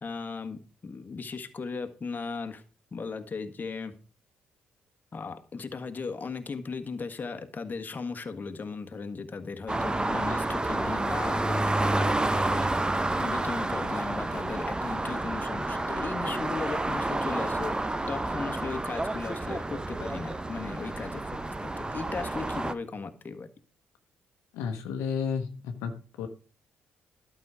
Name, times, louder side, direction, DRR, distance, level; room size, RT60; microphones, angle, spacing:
voice 1, 0.0-2.6 2.9-3.9 5.1-12.7 13.2-17.7 18.1-23.5, left 4 dB, 35° left, 7 dB, 1.5 m, -37 dB
sound 1, 9.7-22.7, right 2 dB, 15° right, 0.9 m, -29 dB
voice 2, 24.5-26.3, left 6 dB, 75° left, 5 dB, 1.1 m, -32 dB
12.0 x 6.3 x 4.9 m, 0.37 s
hypercardioid pair, 50°, 5 cm